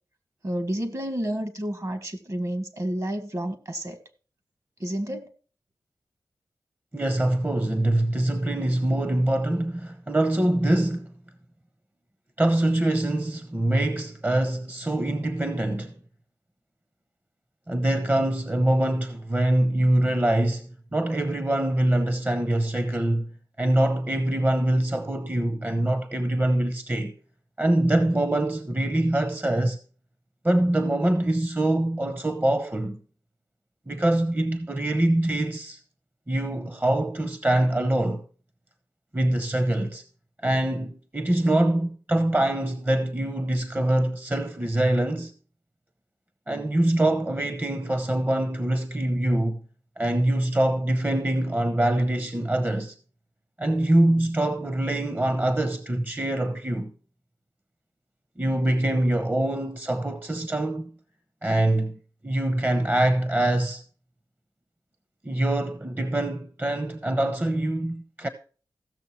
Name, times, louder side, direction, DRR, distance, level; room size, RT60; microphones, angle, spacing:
voice 1, 0.4-4.0 4.8-5.3, right 1 dB, 45° right, 1.8 m, -30 dB
voice 2, 6.9-11.1 12.4-15.9 17.7-23.3 23.6-27.1 27.6-29.8 30.4-33.0 33.9-35.8 36.3-38.2 39.1-40.0 40.4-45.3 46.5-49.6 50.0-52.9 53.6-56.9 58.4-60.9 61.4-61.9 62.2-63.8 65.2-68.3, right 1 dB, 25° right, 0.9 m, -24 dB
15.5 x 6.6 x 4.4 m
cardioid pair, 55°, 8 cm